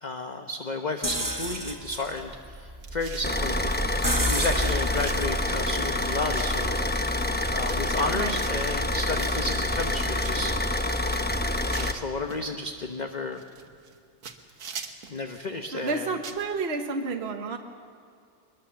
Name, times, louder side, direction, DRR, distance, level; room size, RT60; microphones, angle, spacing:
voice 1, 0.0-3.7 4.3-6.8 7.5-10.5 11.7-13.4 15.1-16.1, left 2 dB, 35° left, 5 dB, 1.0 m, -32 dB
sound 1, 1.0-6.8, equal, 15° right, 1.4 m, -31 dB
sound 2, 2.8-3.4 3.9-4.0 4.3-5.2 5.7-6.9 7.4-7.8 8.1-8.6 9.2-10.3 10.8-12.5 13.3-14.0 14.2-15.2 15.8-16.4, right 6 dB, 75° right, 1.8 m, -43 dB
Car / Idling, 3.2-11.9, left 1 dB, 10° left, 0.7 m, -27 dB
voice 2, 15.7-17.6, right 4 dB, 45° right, 4 dB, 1.4 m, -30 dB
23.0 x 21.5 x 7.0 m, 2.3 s
omnidirectional pair, 1.6 m